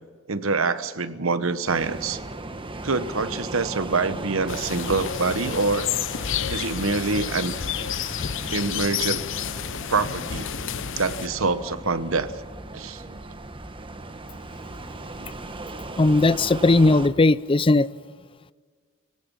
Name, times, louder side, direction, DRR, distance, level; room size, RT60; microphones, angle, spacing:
voice 1, 0.3-2.2 2.8-5.9 6.5-7.5 8.5-9.2 9.9-10.5 11.0-12.3 12.7-13.2 15.2-15.3, right 4 dB, 75° right, 12 dB, 1.2 m, -25 dB
sound 1, 1.7-17.1, right 2 dB, 25° right, 1.3 m, -37 dB
sound 2, 4.5-11.3, left 9 dB, 65° left, 0.7 m, -30 dB
voice 2, 15.9-17.9, left 2 dB, 25° left, 18 dB, 0.5 m, -18 dB
27.5 x 17.0 x 5.6 m, 1.5 s
head